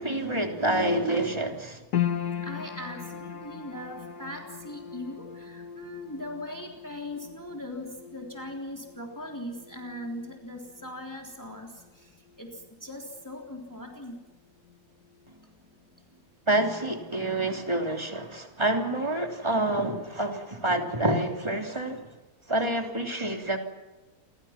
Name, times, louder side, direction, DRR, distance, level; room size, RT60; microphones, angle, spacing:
voice 1, 0.0-1.8 16.5-22.0 22.5-23.6, right 1 dB, 15° right, 3 dB, 3.3 m, -27 dB
sound 1, 1.9-14.3 14.6-15.5 16.0-16.1, left 10 dB, 85° left, 1.9 m, -38 dB
voice 2, 2.4-14.3, left 1 dB, 10° left, 1 dB, 3.5 m, -40 dB
29.5 x 24.5 x 6.0 m, 1.2 s
omnidirectional pair, 1.6 m